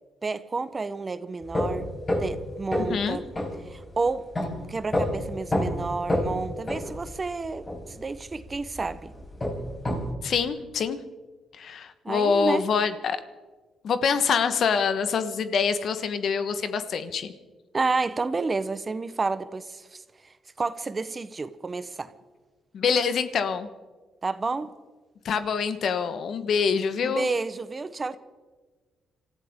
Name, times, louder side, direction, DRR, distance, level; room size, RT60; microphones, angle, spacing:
voice 1, 0.2-1.9 2.2-3.2 3.7-4.2 4.7-9.1 12.0-12.7 17.7-22.1 24.2-24.7 27.0-28.2, right 3 dB, 30° right, 0.9 m, -30 dB
sound 1, 1.4-10.1, left 1 dB, 25° left, 4.8 m, -29 dB
voice 2, 2.8-3.2 10.2-11.0 11.5-13.2 13.8-17.3 22.7-23.7 25.2-27.3, left 6 dB, 60° left, 1.2 m, -25 dB
26.5 x 14.5 x 3.6 m
cardioid pair, 90°, 0 cm